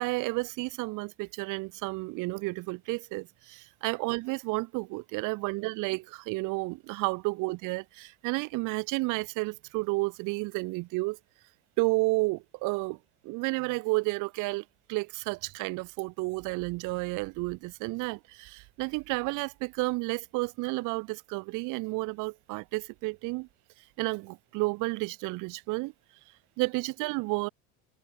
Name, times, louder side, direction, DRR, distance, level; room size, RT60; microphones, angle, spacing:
voice 1, 0.0-11.2 11.8-13.0 13.2-14.6 14.9-23.5 24.0-25.9 26.6-27.5, right 24 dB, 65° right, 1.1 m, -31 dB
supercardioid pair, 95°, 34 cm